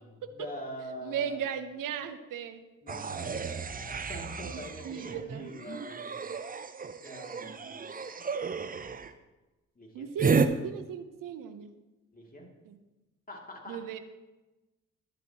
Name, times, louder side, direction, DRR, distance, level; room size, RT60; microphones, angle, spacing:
voice 1, 0.0-1.4 2.8-6.2 7.0-7.7 9.8-10.1 12.1-12.5 13.3-13.8, left 1 dB, 20° left, -1 dB, 2.7 m, -44 dB
voice 2, 1.0-2.6 4.4-5.5 9.9-11.7 12.7-12.8 13.7-14.0, right 8 dB, 55° right, 10 dB, 0.8 m, -37 dB
sound 1, 2.9-9.1 10.2-10.5, right 5 dB, 20° right, 0.6 m, -32 dB
11.0 x 8.3 x 3.0 m, 1.1 s
hypercardioid pair, 40°, 39 cm